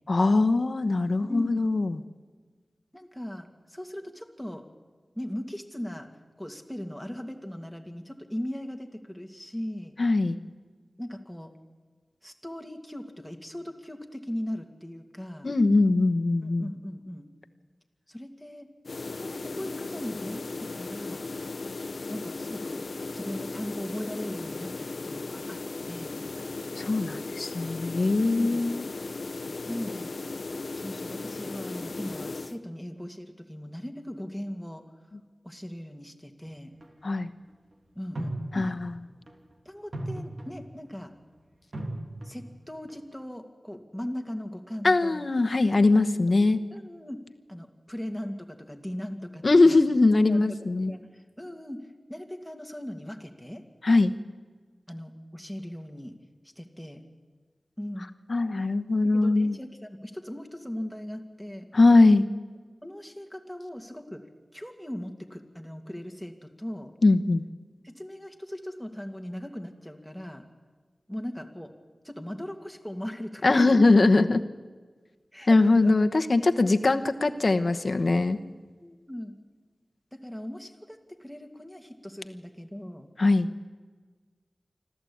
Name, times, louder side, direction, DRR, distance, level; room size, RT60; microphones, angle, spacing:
voice 1, 0.1-2.0 10.0-10.4 15.4-16.7 26.8-28.9 37.0-37.3 38.5-38.9 44.8-46.6 49.4-50.9 53.8-54.1 58.3-59.6 61.7-62.2 67.0-67.4 73.4-74.4 75.5-78.4 83.2-83.5, left 3 dB, 60° left, 8 dB, 1.1 m, -21 dB
voice 2, 1.2-1.7 2.9-4.7 5.2-6.1 6.4-9.9 11.0-11.5 12.2-15.5 16.4-17.3 18.1-18.7 19.0-21.3 22.1-26.2 28.3-28.6 29.7-30.1 30.7-34.8 35.4-36.7 37.9-38.8 39.6-41.1 42.2-45.3 45.8-47.2 47.5-49.8 50.1-53.6 54.9-56.2 56.6-57.0 57.8-58.1 59.1-61.7 62.8-64.2 64.5-66.9 67.8-70.4 71.1-71.7 72.0-73.8 74.3-74.4 75.3-76.0 78.8-79.3 80.1-83.1, equal, ahead, 4 dB, 2.3 m, -38 dB
sound 1, 18.8-32.6, left 3 dB, 75° left, 0.9 m, -36 dB
sound 2, 36.8-36.9 38.2-38.9 39.3-39.5 39.9-40.8 41.7-42.5 42.9-43.1, right 1 dB, 65° right, 3.0 m, -36 dB
25.5 x 14.0 x 8.7 m, 1.5 s
wide cardioid pair, 75°, 0 cm